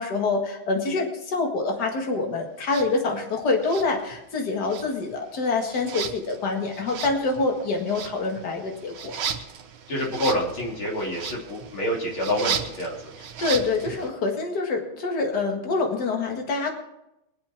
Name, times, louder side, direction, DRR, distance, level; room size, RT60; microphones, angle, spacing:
voice 1, 0.0-9.1 13.4-16.8, left 3 dB, 55° left, 2 dB, 2.3 m, -26 dB
sound 1, 2.6-2.9 3.6-4.4 4.6-14.1, right 7 dB, 80° right, 1.9 m, -35 dB
voice 2, 9.9-13.1, equal, 90° left, -3 dB, 3.9 m, -27 dB
23.0 x 7.7 x 4.5 m, 0.86 s
omnidirectional pair, 2.2 m